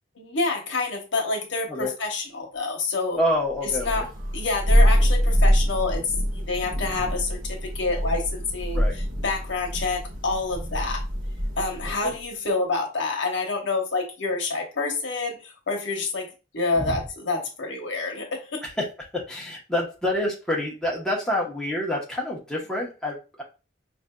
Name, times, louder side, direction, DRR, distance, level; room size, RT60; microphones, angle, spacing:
voice 1, 0.2-3.2 3.8-4.1 4.3-6.0 6.3-8.8 9.2-11.0 11.6-18.6, left 3 dB, 80° left, 2 dB, 0.9 m, -28 dB
voice 2, 3.2-4.0 8.7-8.9 12.0-12.1 16.7-17.0 18.6-18.9 19.1-23.4, left 1 dB, 5° left, -3 dB, 0.9 m, -27 dB
Thunder, 3.7-12.1, equal, 45° right, 1.0 m, -24 dB
4.8 x 2.6 x 2.2 m, 0.30 s
head